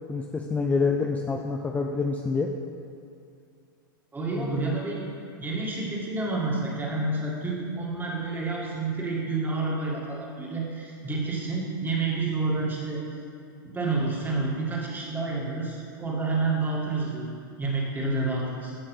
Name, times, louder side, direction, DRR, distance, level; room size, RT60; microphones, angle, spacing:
voice 1, 0.1-2.5 4.3-4.7, left 4 dB, 15° left, 2 dB, 0.5 m, -27 dB
voice 2, 4.1-5.1 5.4-13.0 13.6-17.3 17.6-18.8, right 3 dB, 15° right, -3 dB, 2.0 m, -29 dB
14.0 x 5.7 x 3.4 m, 2.4 s
hypercardioid pair, 100°, 12 cm